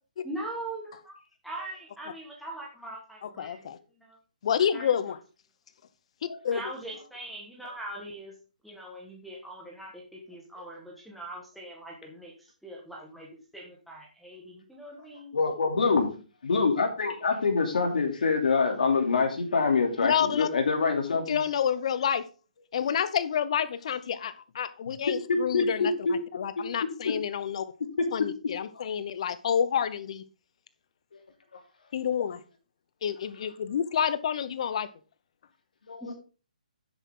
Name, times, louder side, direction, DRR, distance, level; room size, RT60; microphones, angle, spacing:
voice 1, 0.2-1.1 1.4-3.7 4.0-4.2 4.7-4.9 6.5-8.3 8.6-15.3 36.0-36.1, right 1 dB, ahead, -4 dB, 1.5 m, -41 dB
voice 2, 3.2-3.8 4.4-5.2 6.2-6.6 20.0-20.5 21.3-22.3 22.7-27.7 28.1-30.2 31.9-32.4 33.0-34.9, left 8 dB, 45° left, 15 dB, 0.9 m, -29 dB
voice 3, 15.3-16.1 16.4-21.4 25.3-26.1 35.9-36.0, left 4 dB, 70° left, 3 dB, 2.9 m, -25 dB
10.0 x 8.4 x 3.8 m, 0.34 s
hypercardioid pair, 165°, 5 cm